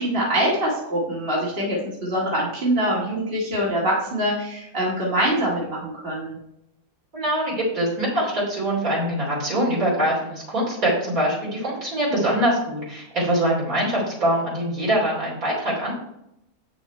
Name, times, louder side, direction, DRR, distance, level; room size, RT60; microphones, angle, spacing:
voice 1, 0.0-6.4, right 1 dB, 40° right, -5 dB, 2.1 m, -24 dB
voice 2, 7.1-15.9, right 1 dB, 65° right, -6 dB, 3.4 m, -23 dB
8.5 x 6.3 x 4.4 m, 0.81 s
omnidirectional pair, 1.6 m